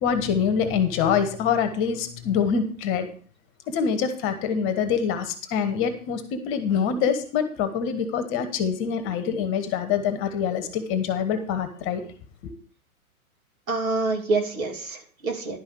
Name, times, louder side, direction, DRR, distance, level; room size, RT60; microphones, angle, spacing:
voice 1, 0.0-3.1 3.7-12.0 12.4-12.5, left 7 dB, 30° left, 11 dB, 1.3 m, -25 dB
voice 2, 13.7-15.6, right 3 dB, 70° right, 5 dB, 2.7 m, -26 dB
11.0 x 5.6 x 6.6 m, 0.42 s
hypercardioid pair, 125°, 43 cm